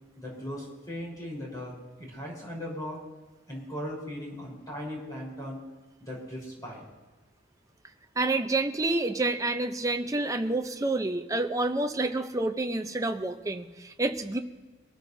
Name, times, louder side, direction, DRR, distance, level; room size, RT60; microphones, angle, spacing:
voice 1, 0.2-3.0 3.5-5.6 6.0-6.8, equal, 20° left, -4 dB, 4.2 m, -38 dB
voice 2, 8.2-14.4, right 2 dB, 15° right, 7 dB, 0.7 m, -28 dB
23.0 x 14.0 x 2.7 m, 1.2 s
head